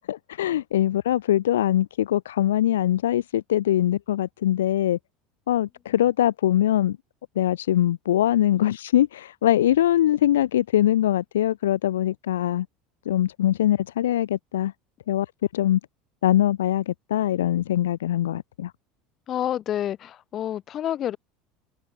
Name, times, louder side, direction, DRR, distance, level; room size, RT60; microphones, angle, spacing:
voice 1, 0.1-5.0 5.5-7.0 7.4-12.7 13.1-14.7 15.1-15.3 15.5-15.8 16.2-18.7, left 12 dB, 70° left, 0.3 m, -22 dB
voice 2, 19.3-21.2, left 11 dB, 40° left, 2.4 m, -28 dB
figure-of-eight pair, 70°, 0 cm